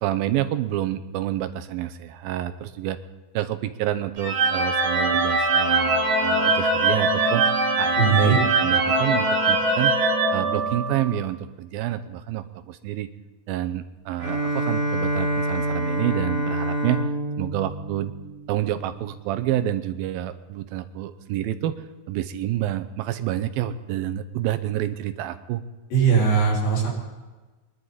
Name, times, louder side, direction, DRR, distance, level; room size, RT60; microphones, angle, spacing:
voice 1, 0.0-3.0 3.3-7.5 7.8-10.0 10.3-13.1 13.5-17.1 17.4-18.1 18.5-25.6, right 12 dB, 90° right, 11 dB, 2.7 m, -28 dB
sound 1, 4.2-11.2, right 2 dB, 65° right, 3.4 m, -22 dB
voice 2, 8.0-8.4 25.9-26.9, right 6 dB, 80° left, -4 dB, 6.2 m, -19 dB
Bowed string instrument, 14.2-18.9, right 1 dB, 20° right, 3.4 m, -27 dB
24.0 x 11.5 x 4.0 m, 1.2 s
omnidirectional pair, 4.1 m